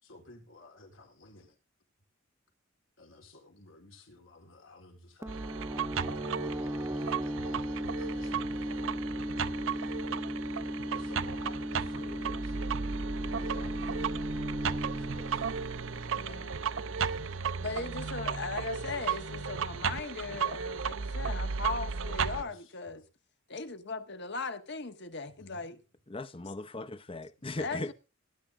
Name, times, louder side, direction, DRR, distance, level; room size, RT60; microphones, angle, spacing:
voice 1, 0.0-1.6 3.0-5.5 6.1-8.8 9.6-10.1 10.9-12.8 13.2-13.9 14.7-15.5 17.1-17.3 22.2-23.1 25.4-25.7 27.4-27.9, left 2 dB, 80° left, 4.1 m, -54 dB
sound 1, 5.2-16.7, equal, 15° right, 1.0 m, -37 dB
sound 2, 5.3-22.4, right 6 dB, 75° right, 0.7 m, -35 dB
voice 2, 16.1-16.6 17.5-23.0 23.5-25.8 27.6-27.9, left 4 dB, 60° left, 1.4 m, -38 dB
voice 3, 26.1-27.9, left 2 dB, 25° left, 0.8 m, -38 dB
18.0 x 10.0 x 3.6 m
head